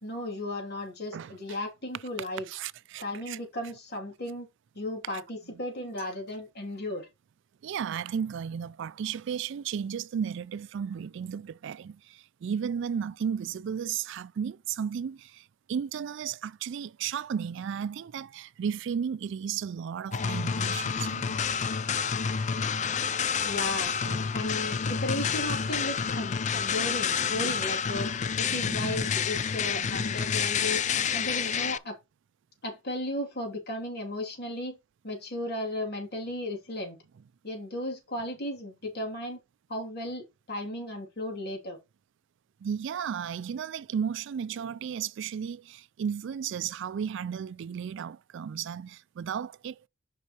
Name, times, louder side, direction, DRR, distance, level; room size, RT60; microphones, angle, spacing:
voice 1, 0.0-2.5 3.0-4.5 4.7-7.1 23.4-23.9 24.3-28.1 28.4-30.8 31.1-32.0 32.6-34.8 35.0-37.0 37.4-39.4 39.7-41.8, left 1 dB, 55° left, 2.6 m, -35 dB
voice 2, 1.1-1.6 2.5-3.4 7.6-21.4 24.0-24.3 27.3-27.6 28.4-29.0 29.7-30.1 42.6-49.8, right 7 dB, 70° right, 0.3 m, -34 dB
sound 1, 20.1-31.8, left 6 dB, 40° left, 0.4 m, -29 dB
8.1 x 5.5 x 2.9 m
head